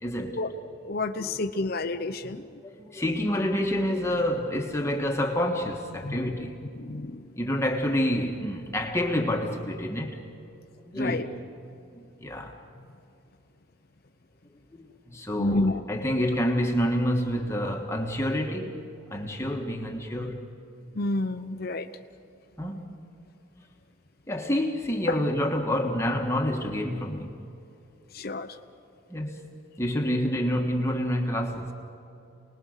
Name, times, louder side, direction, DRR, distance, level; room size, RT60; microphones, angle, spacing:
voice 1, 0.0-0.5 1.2-1.4 2.4-6.6 7.4-10.2 10.9-11.3 12.2-12.6 14.7-20.5 22.6-22.9 24.3-27.4 29.1-29.5 29.8-31.7, equal, 15° left, 1.4 m, -28 dB
voice 2, 0.8-2.5 6.0-6.2 6.8-7.2 10.9-11.3 15.4-15.8 21.0-21.9 25.1-25.2 28.1-28.5, left 2 dB, 45° left, 0.8 m, -29 dB
28.5 x 20.0 x 6.5 m
head